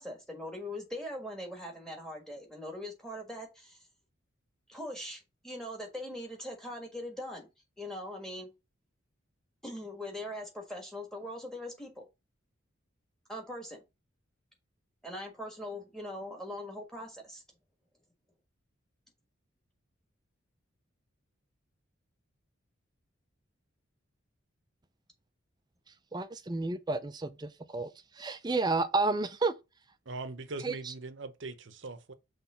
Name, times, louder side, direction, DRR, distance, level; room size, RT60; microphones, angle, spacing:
voice 1, 0.0-3.8 4.7-7.5 7.8-8.5 9.6-12.0 13.3-13.8 15.0-17.4, left 1 dB, ahead, 1.5 m, -41 dB
voice 2, 26.1-29.5 30.6-30.9, right 3 dB, 20° right, 0.5 m, -31 dB
voice 3, 30.1-32.1, right 3 dB, 65° right, 0.8 m, -41 dB
6.0 x 3.3 x 5.6 m
head